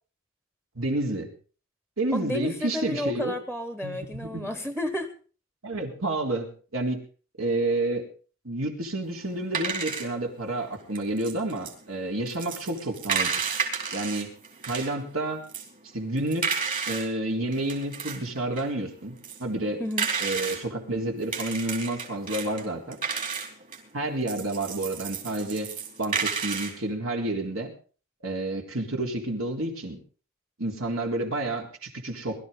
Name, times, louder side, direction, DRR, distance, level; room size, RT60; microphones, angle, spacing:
voice 1, 0.8-1.3 2.0-3.3 3.8-4.5 5.6-7.0 7.4-8.1 8.4-13.3 13.9-14.3 14.7-15.4 15.9-19.8 20.2-23.0 23.9-25.7 26.0-27.7 28.2-30.0 30.6-32.4, right 2 dB, 70° right, 2 dB, 3.8 m, -30 dB
voice 2, 2.1-5.1 19.8-20.1, left 1 dB, 5° right, 8 dB, 1.2 m, -31 dB
sound 1, 9.2-15.0 15.4-17.1 17.4-20.6 21.2-26.8, right 5 dB, 40° right, 4.3 m, -32 dB
22.0 x 13.0 x 3.9 m, 0.38 s
head